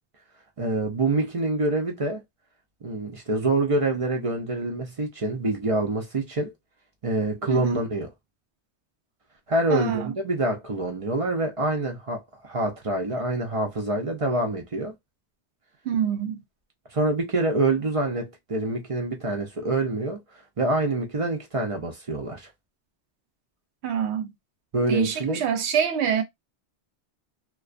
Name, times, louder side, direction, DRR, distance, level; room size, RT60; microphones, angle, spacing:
voice 1, 0.6-2.2 2.8-6.5 7.0-8.1 9.5-14.9 16.9-20.2 20.6-22.5 24.7-25.4, right 2 dB, 45° right, 0.4 m, -26 dB
voice 2, 7.5-7.8 9.7-10.1 15.8-16.4 23.8-24.3 24.9-26.2, right 8 dB, 75° right, 0.8 m, -26 dB
2.3 x 2.2 x 2.4 m
omnidirectional pair, 1.2 m